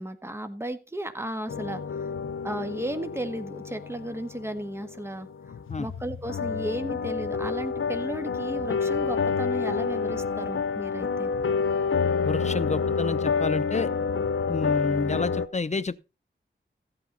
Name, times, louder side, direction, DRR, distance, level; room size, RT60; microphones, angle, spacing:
voice 1, 0.0-2.1 2.4-5.3 5.8-11.3, right 1 dB, 10° right, 1.5 m, -34 dB
sound 1, 1.5-15.5, left 5 dB, 90° left, 0.7 m, -28 dB
voice 2, 12.2-13.9 14.5-16.0, left 3 dB, 35° left, 0.6 m, -29 dB
14.5 x 8.8 x 3.9 m
wide cardioid pair, 90°, 20 cm